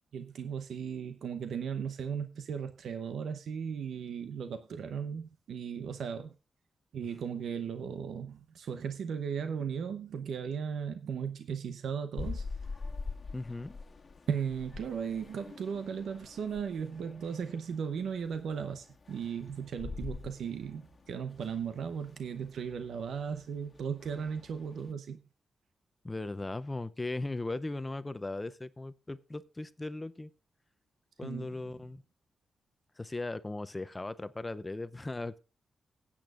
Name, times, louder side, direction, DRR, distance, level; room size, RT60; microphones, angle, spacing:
voice 1, 0.1-6.3 6.9-12.5 14.3-25.2 31.2-31.6, right 7 dB, 85° right, 0.7 m, -36 dB
sound 1, 12.2-24.9, left 4 dB, 40° left, 1.5 m, -45 dB
voice 2, 13.3-13.8 26.0-30.3 31.2-32.0 33.0-35.4, left 2 dB, 20° left, 0.5 m, -38 dB
19.0 x 8.7 x 2.4 m
wide cardioid pair, 105°, 0 cm